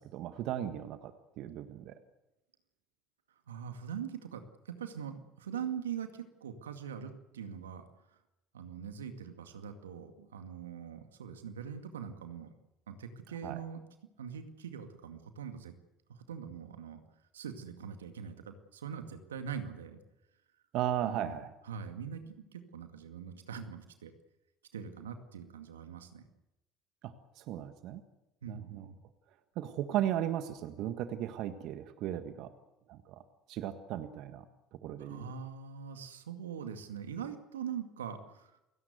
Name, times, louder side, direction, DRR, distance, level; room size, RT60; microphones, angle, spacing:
voice 1, 0.0-1.9 13.4-13.6 20.7-21.5 27.0-28.0 28.5-28.9 29.6-32.5 32.9-33.2 33.5-34.4 34.8-35.3, right 11 dB, 60° right, 9 dB, 1.6 m, -36 dB
voice 2, 3.5-7.9 8.5-12.5 12.9-13.8 14.2-15.7 16.1-17.0 17.3-20.0 21.0-21.4 21.6-24.1 24.7-26.3 28.4-29.0 35.0-38.5, right 7 dB, 85° right, 7 dB, 2.1 m, -42 dB
29.0 x 17.5 x 8.1 m, 0.96 s
hypercardioid pair, 65°, 0 cm